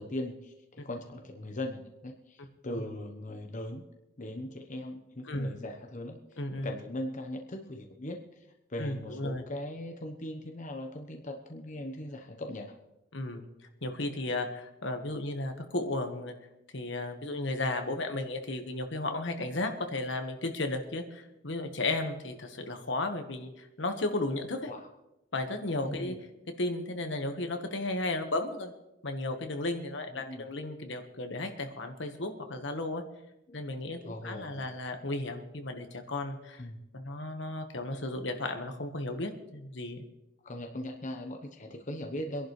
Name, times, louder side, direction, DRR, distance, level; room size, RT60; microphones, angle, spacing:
voice 1, 0.0-3.8 4.2-12.7 24.7-24.9 25.8-26.1 30.1-30.5 33.5-33.6 34.0-34.7 36.6-36.8 40.4-42.5, left 1 dB, 40° left, 3 dB, 1.1 m, -39 dB
voice 2, 2.4-2.9 5.3-5.6 6.4-6.7 8.8-9.4 13.1-13.4 13.8-16.3 16.7-24.6 25.3-26.2 26.6-28.7 29.0-33.0 33.5-36.6 36.9-40.0, left 2 dB, 70° left, 5 dB, 1.5 m, -34 dB
24.5 x 11.0 x 3.3 m, 0.92 s
head